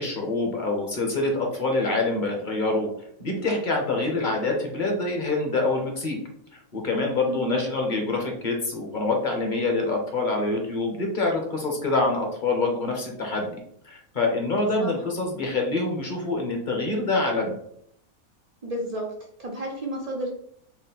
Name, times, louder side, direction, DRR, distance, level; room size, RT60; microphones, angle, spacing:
voice 1, 0.0-2.9 3.2-6.2 6.7-13.5 13.8-17.5, left 2 dB, 40° left, 1 dB, 0.8 m, -26 dB
voice 2, 7.3-7.6 14.8-15.0 18.6-19.1 19.4-20.3, right 1 dB, 80° right, -1 dB, 0.3 m, -31 dB
4.1 x 2.1 x 4.0 m, 0.68 s
omnidirectional pair, 1.5 m